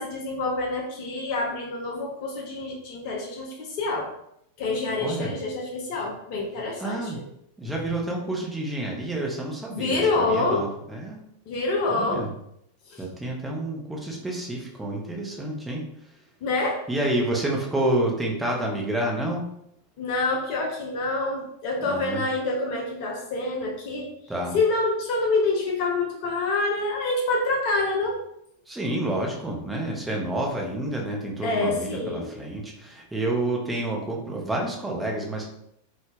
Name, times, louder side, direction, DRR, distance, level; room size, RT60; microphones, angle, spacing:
voice 1, 0.0-4.1 4.6-7.1 7.6-7.9 9.7-10.7 11.5-12.2 12.9-13.0 16.4-16.8 20.0-24.1 24.5-28.2 31.4-32.3, left 3 dB, 45° left, -1 dB, 0.5 m, -27 dB
voice 2, 5.0-5.3 6.8-7.2 7.6-11.2 11.9-12.3 13.0-15.8 16.9-19.4 21.8-22.2 24.3-24.6 28.7-35.5, right 1 dB, 5° right, -2 dB, 0.6 m, -29 dB
2.2 x 2.0 x 3.2 m, 0.75 s
figure-of-eight pair, 90°, 0 cm